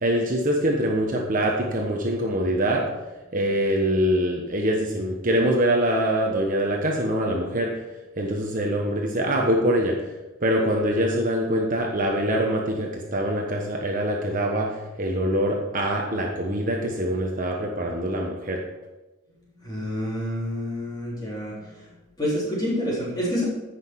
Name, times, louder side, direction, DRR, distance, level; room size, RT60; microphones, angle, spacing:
voice 1, 0.0-2.8 3.3-7.8 8.2-10.0 10.4-18.6, right 1 dB, 40° right, 0 dB, 1.1 m, -24 dB
voice 2, 19.6-21.5 22.2-23.4, equal, 20° left, -7 dB, 3.7 m, -28 dB
14.5 x 6.1 x 4.7 m, 1.1 s
head